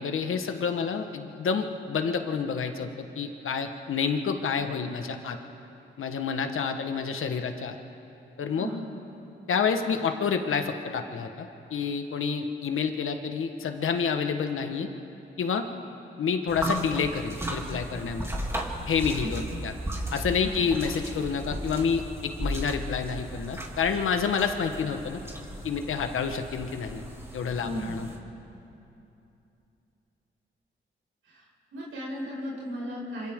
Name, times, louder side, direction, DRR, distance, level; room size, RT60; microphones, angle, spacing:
voice 1, 0.0-5.4 6.0-7.8 8.4-8.7 9.5-14.9 15.4-15.7 16.2-18.3 18.9-19.7 20.1-25.2 25.6-27.0 27.3-28.1, left 6 dB, 80° left, 6 dB, 1.4 m, -28 dB
voice 2, 8.6-8.9 19.2-19.6 20.4-20.6 27.6-28.0 31.2-33.3, equal, 85° right, -5 dB, 6.1 m, -36 dB
sound 1, 16.5-28.2, right 1 dB, 10° right, 3.0 m, -36 dB
26.5 x 26.0 x 3.8 m, 2.9 s
cardioid pair, 70°, 21 cm